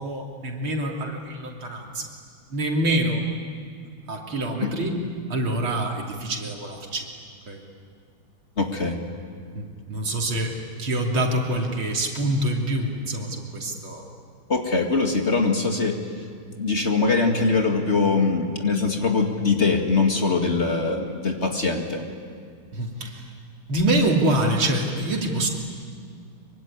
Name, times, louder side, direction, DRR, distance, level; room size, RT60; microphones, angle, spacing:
voice 1, 0.0-2.1 2.5-3.2 4.1-5.0 5.3-7.1 7.5-7.6 9.5-14.1 22.7-23.3 23.7-25.5, right 1 dB, 85° right, 0 dB, 3.9 m, -26 dB
voice 2, 8.6-9.0 14.5-16.0 16.6-22.1, left 4 dB, 35° left, 3 dB, 2.3 m, -22 dB
24.5 x 24.0 x 9.8 m, 2.2 s
omnidirectional pair, 2.2 m